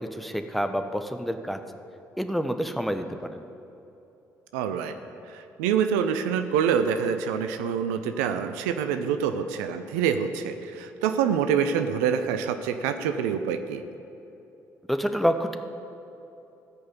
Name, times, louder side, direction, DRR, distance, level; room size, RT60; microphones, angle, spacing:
voice 1, 0.0-1.6 2.2-3.4 14.9-15.6, equal, ahead, 7 dB, 1.0 m, -28 dB
voice 2, 4.5-5.0 5.3-13.8, right 7 dB, 75° right, 8 dB, 0.6 m, -26 dB
15.5 x 5.4 x 8.2 m, 2.9 s
hypercardioid pair, 45°, 9 cm